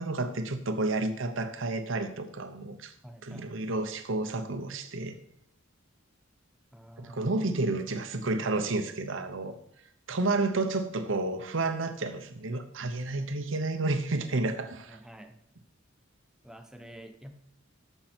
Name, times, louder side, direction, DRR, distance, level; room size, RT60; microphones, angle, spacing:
voice 1, 0.0-2.9 3.2-5.2 7.0-9.6 10.1-15.0, right 2 dB, 70° right, 8 dB, 0.9 m, -31 dB
voice 2, 3.0-3.7 6.7-7.3 14.9-15.4 16.4-17.3, right 1 dB, 5° right, 6 dB, 0.8 m, -49 dB
13.5 x 5.6 x 4.4 m, 0.72 s
head